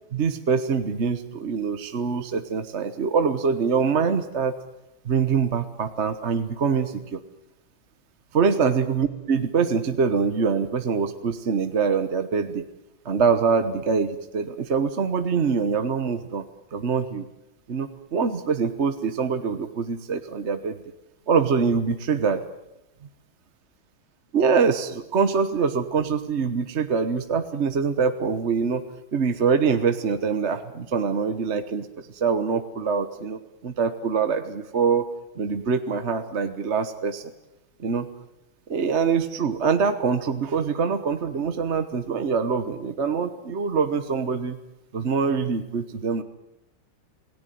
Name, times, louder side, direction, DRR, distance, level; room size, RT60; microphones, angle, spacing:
voice 1, 0.1-4.6 5.0-7.2 8.3-12.6 13.0-16.4 16.7-17.2 17.7-20.8 21.3-22.4 24.3-28.8 29.1-35.1 35.4-37.3 37.8-38.1 38.7-44.6 44.9-46.2, right 5 dB, 40° right, 8 dB, 1.2 m, -24 dB
27.5 x 18.0 x 9.3 m, 0.91 s
omnidirectional pair, 2.2 m